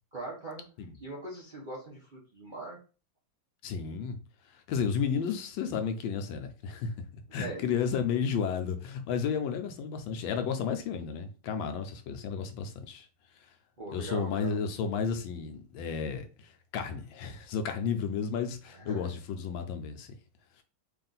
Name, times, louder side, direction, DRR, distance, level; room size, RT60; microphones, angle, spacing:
voice 1, 0.1-0.6 1.0-2.8 7.4-7.6 13.8-14.6 18.6-19.1, right 2 dB, 45° right, 0.6 m, -41 dB
voice 2, 3.6-4.2 4.5-6.9 7.3-13.1 13.9-20.1, left 6 dB, 75° left, 1.3 m, -32 dB
3.6 x 2.5 x 3.9 m
omnidirectional pair, 2.2 m